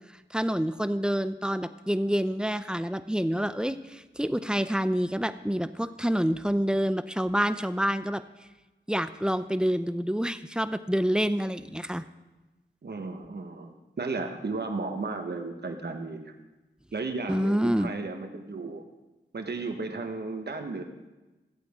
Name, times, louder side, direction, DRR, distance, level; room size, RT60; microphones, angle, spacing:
voice 1, 0.3-8.2 8.9-12.0 17.3-17.9, equal, 5° right, 12 dB, 0.6 m, -27 dB
voice 2, 12.8-16.3 16.9-18.8 19.3-20.8, right 3 dB, 60° right, 5 dB, 1.4 m, -34 dB
15.0 x 8.4 x 3.7 m, 1.1 s
cardioid pair, 45°, 19 cm